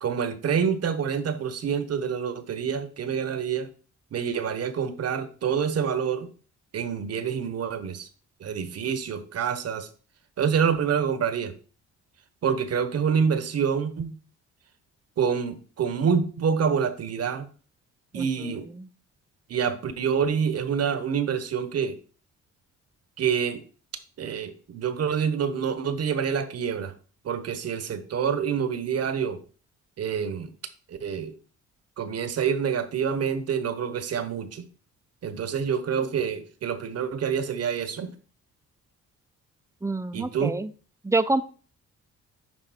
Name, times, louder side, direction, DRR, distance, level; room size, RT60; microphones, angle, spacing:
voice 1, 0.0-3.7 4.1-6.3 6.7-8.1 8.4-9.9 10.4-11.5 12.4-14.2 15.2-17.5 18.1-18.7 19.5-22.0 23.2-23.6 24.2-26.9 27.2-29.4 30.0-30.5 30.9-31.3 32.0-34.7 35.2-38.1 40.1-40.5, right 7 dB, 55° right, 11 dB, 1.1 m, -27 dB
voice 2, 18.1-18.9 39.8-40.7 41.0-41.4, right 2 dB, 10° right, 12 dB, 0.6 m, -27 dB
10.5 x 3.6 x 4.3 m, 0.39 s
cardioid pair, 90°, 30 cm